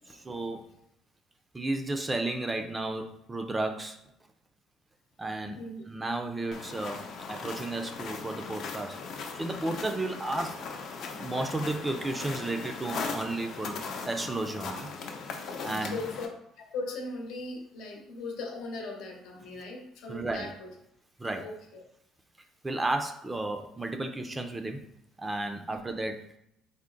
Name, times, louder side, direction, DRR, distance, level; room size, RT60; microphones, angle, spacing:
voice 1, 0.1-0.7 1.5-4.0 5.2-9.0 9.3-10.7 11.1-14.9 15.6-16.0 20.1-20.5 21.2-21.5 22.6-24.9 25.2-26.2, right 2 dB, 15° right, 5 dB, 0.4 m, -33 dB
sound 1, 6.5-16.3, left 4 dB, 60° left, 0.6 m, -38 dB
voice 2, 15.8-20.7 21.4-21.8 25.7-25.8, left 3 dB, 80° left, 1 dB, 0.9 m, -39 dB
3.6 x 2.1 x 3.8 m, 0.76 s
cardioid pair, 110°, 0 cm